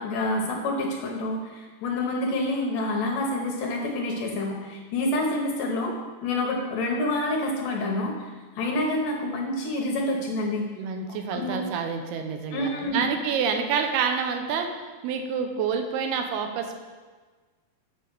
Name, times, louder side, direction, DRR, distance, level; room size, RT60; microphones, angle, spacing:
voice 1, 0.0-5.9 6.2-8.3 8.6-10.7 11.3-11.6 12.5-13.0, left 1 dB, 70° left, 0 dB, 2.3 m, -27 dB
voice 2, 10.8-14.7 15.0-16.8, right 6 dB, 85° right, 5 dB, 2.8 m, -28 dB
7.2 x 5.8 x 6.6 m, 1.4 s
omnidirectional pair, 4.5 m